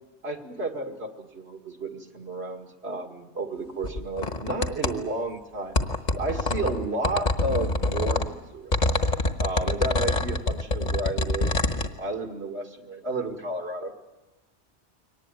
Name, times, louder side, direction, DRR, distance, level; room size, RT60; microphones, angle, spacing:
voice 1, 0.2-5.8 6.1-8.9 9.4-11.5 12.0-13.9, right 2 dB, 75° right, 3 dB, 2.5 m, -32 dB
sound 1, 3.8-5.0 5.8-8.3 8.7-11.9, left 2 dB, 40° left, 1.4 m, -25 dB
23.5 x 19.0 x 9.1 m, 1.1 s
omnidirectional pair, 1.1 m